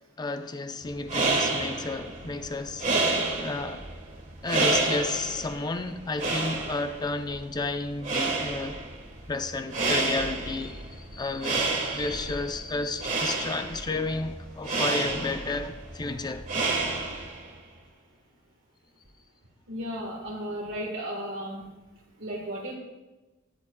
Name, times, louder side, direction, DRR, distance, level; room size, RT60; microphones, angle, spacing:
voice 1, 0.2-3.1 3.4-3.9 4.4-8.8 9.3-16.5, left 3 dB, 20° left, 0.4 m, -32 dB
sound 1, 0.9-17.5, right 3 dB, 35° right, 1.4 m, -30 dB
voice 2, 3.1-3.4 19.7-21.7 22.2-22.7, equal, 60° right, 1.4 m, -35 dB
13.0 x 9.8 x 2.3 m
head